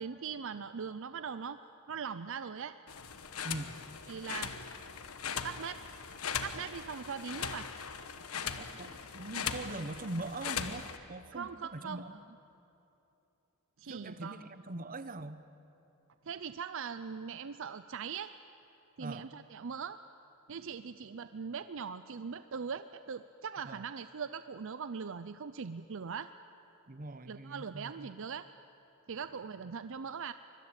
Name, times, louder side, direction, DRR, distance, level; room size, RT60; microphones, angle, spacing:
voice 1, 0.0-1.6 1.9-2.7 4.1-4.5 5.4-5.8 6.4-7.7 11.3-12.0 13.8-14.4 16.3-18.3 19.0-20.0 20.5-26.3 27.3-28.5 29.1-30.3, right 6 dB, 60° right, 12 dB, 0.6 m, -40 dB
sound 1, 2.9-11.0, left 7 dB, 85° left, 1.3 m, -40 dB
voice 2, 8.6-12.2 13.9-15.4 19.0-19.3 23.6-23.8 26.9-28.1, right 2 dB, 40° right, 12 dB, 1.0 m, -42 dB
24.5 x 22.0 x 9.0 m, 2.9 s
head